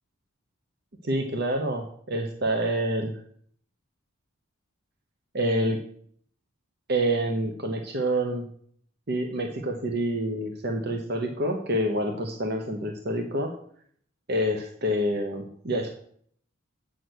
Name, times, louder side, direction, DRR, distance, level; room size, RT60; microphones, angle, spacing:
voice 1, 1.0-3.2 5.3-5.8 6.9-8.4 9.1-13.5 14.3-15.9, right 1 dB, 45° right, 4 dB, 1.0 m, -27 dB
8.5 x 8.0 x 6.2 m, 0.62 s
head